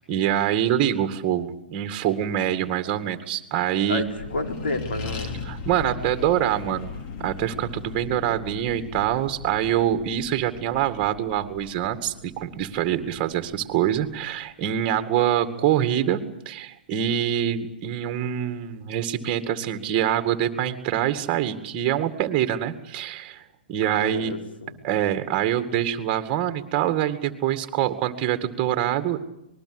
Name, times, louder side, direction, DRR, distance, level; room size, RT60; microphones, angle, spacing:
voice 1, 0.1-4.0 5.5-6.9 7.2-23.4 23.7-24.4 24.8-29.2, right 10 dB, 30° right, 9 dB, 2.2 m, -25 dB
voice 2, 3.9-5.3 23.8-24.7, left 2 dB, 75° left, 3 dB, 4.6 m, -30 dB
Accelerating revving vroom, 4.0-14.9, left 4 dB, 40° left, 2.9 m, -38 dB
26.5 x 20.5 x 8.1 m, 0.82 s
hypercardioid pair, 125°, 5 cm